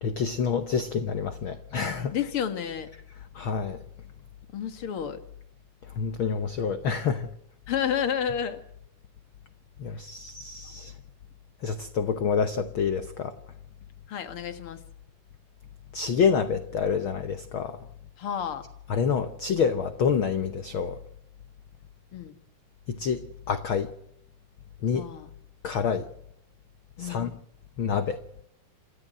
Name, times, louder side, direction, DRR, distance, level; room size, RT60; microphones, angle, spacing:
voice 1, 0.0-2.1 3.3-3.8 5.8-7.3 9.8-10.9 11.6-13.3 15.9-17.8 18.9-21.0 22.9-23.9 24.8-25.1 25.6-26.1 27.0-27.4 27.8-28.2, left 6 dB, 70° left, 10 dB, 1.2 m, -27 dB
voice 2, 2.1-2.9 4.5-5.2 7.7-8.6 14.1-14.8 18.2-18.6 22.1-22.3 24.9-25.3 27.0-27.3, left 8 dB, 50° left, 9 dB, 2.3 m, -30 dB
28.0 x 13.5 x 7.7 m, 0.80 s
omnidirectional pair, 3.7 m